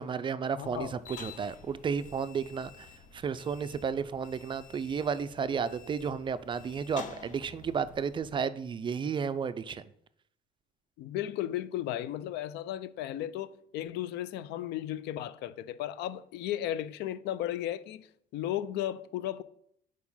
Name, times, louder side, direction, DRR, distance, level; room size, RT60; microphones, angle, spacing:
voice 1, 0.0-9.8, right 6 dB, 30° right, 0.3 m, -33 dB
voice 2, 0.6-1.0 11.0-18.1 18.3-19.4, left 12 dB, 80° left, 0.4 m, -35 dB
sound 1, 0.6-8.3, left 6 dB, 50° left, 0.7 m, -49 dB
4.8 x 4.6 x 5.4 m
cardioid pair, 110°, 17 cm